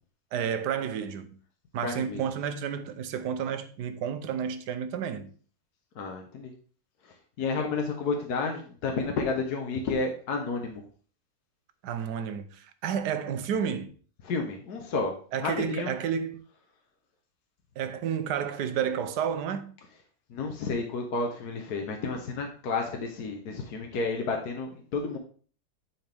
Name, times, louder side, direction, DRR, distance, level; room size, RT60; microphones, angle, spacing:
voice 1, 0.3-1.4 1.7-5.3 11.8-14.0 15.3-16.4 17.8-19.7, right 8 dB, 70° right, 1.2 m, -31 dB
voice 2, 1.8-2.2 5.9-6.5 7.0-10.8 14.2-15.9 20.3-25.2, left 4 dB, 60° left, 1.5 m, -31 dB
9.8 x 4.4 x 3.4 m
omnidirectional pair, 1.9 m